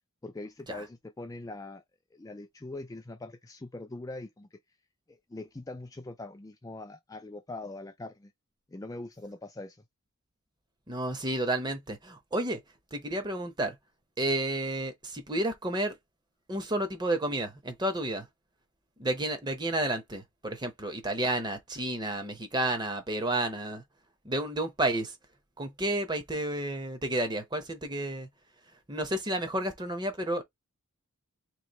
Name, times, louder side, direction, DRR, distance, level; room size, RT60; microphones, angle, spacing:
voice 1, 0.2-1.8 2.1-4.6 5.1-8.3 8.7-9.8, left 2 dB, 15° left, 0.3 m, -42 dB
voice 2, 10.9-12.6 12.9-13.8 14.2-16.0 16.5-18.3 19.0-23.8 24.2-25.1 25.6-28.3 28.9-30.4, right 1 dB, 20° right, 0.9 m, -31 dB
3.2 x 2.8 x 4.0 m
head